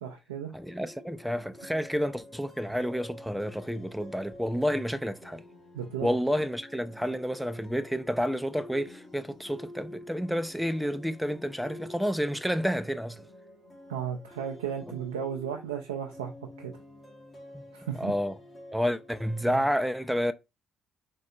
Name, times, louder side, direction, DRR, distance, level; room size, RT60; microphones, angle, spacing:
voice 1, 0.0-0.5 5.7-6.1 13.9-16.8 17.7-18.1 19.5-19.6, right 8 dB, 90° right, 0.3 m, -35 dB
voice 2, 0.5-5.4 6.0-13.3 17.5-17.6 18.0-18.4 18.7-20.3, equal, ahead, 0.4 m, -30 dB
sound 1, 0.6-19.7, left 1 dB, 40° left, 1.4 m, -49 dB
3.6 x 2.3 x 2.6 m
hypercardioid pair, 50°, 0 cm